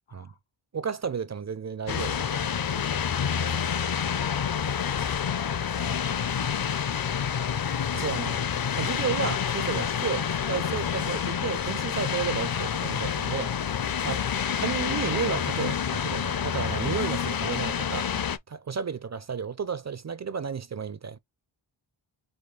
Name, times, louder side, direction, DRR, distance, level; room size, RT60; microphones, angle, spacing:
voice 1, 0.1-0.4, left 5 dB, 75° left, 2.6 m, -53 dB
voice 2, 0.7-2.5 2.8-3.1 7.9-8.4 8.8-13.5 14.0-18.1 18.5-21.2, right 6 dB, 35° right, 0.5 m, -32 dB
sound 1, 1.9-18.4, left 7 dB, 45° left, 0.7 m, -28 dB
5.1 x 2.3 x 3.8 m
wide cardioid pair, 75°, 49 cm